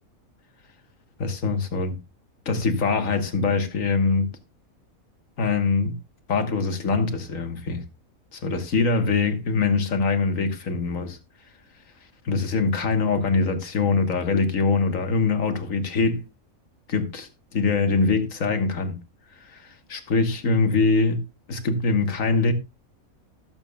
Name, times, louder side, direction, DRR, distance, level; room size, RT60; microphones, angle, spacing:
voice 1, 1.2-1.9 2.5-4.3 5.4-6.0 6.3-7.8 8.3-11.2 12.2-16.2 16.9-19.0 19.4-21.2 21.5-22.5, left 4 dB, 70° left, 1.7 m, -23 dB
19.0 x 7.2 x 2.3 m
omnidirectional pair, 1.5 m